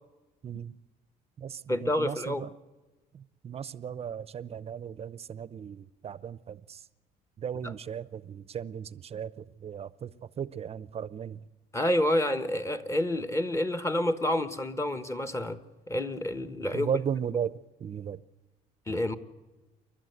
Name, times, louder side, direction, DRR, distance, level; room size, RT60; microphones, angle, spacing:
voice 1, 0.4-0.8 1.4-2.5 3.1-6.9 7.4-11.4 16.7-18.2, right 8 dB, 35° right, 0.7 m, -36 dB
voice 2, 1.7-2.4 7.6-7.7 11.7-15.6 15.9-16.9 18.9-19.2, left 1 dB, 15° left, 1.3 m, -28 dB
28.5 x 12.0 x 8.0 m
cardioid pair, 110°, 17 cm